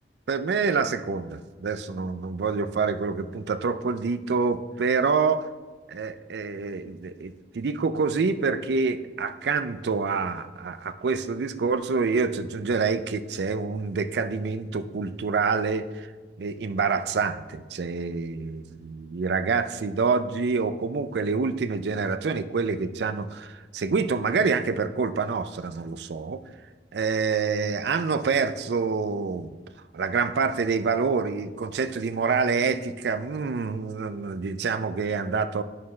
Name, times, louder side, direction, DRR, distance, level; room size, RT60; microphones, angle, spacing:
voice 1, 0.3-5.5 5.9-16.1 16.4-26.4 26.9-29.5 29.9-35.6, right 5 dB, 65° right, 11 dB, 0.4 m, -27 dB
9.4 x 5.7 x 3.1 m, 1.3 s
head